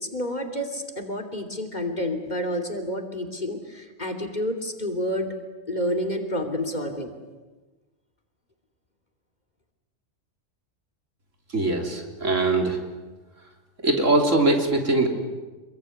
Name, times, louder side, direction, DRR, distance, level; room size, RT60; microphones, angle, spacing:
voice 1, 0.0-5.3 5.7-7.1, equal, 35° left, 5 dB, 3.2 m, -29 dB
voice 2, 11.5-12.8 13.8-15.1, right 2 dB, 90° right, 3 dB, 3.9 m, -21 dB
27.0 x 22.5 x 9.6 m, 1.2 s
omnidirectional pair, 1.3 m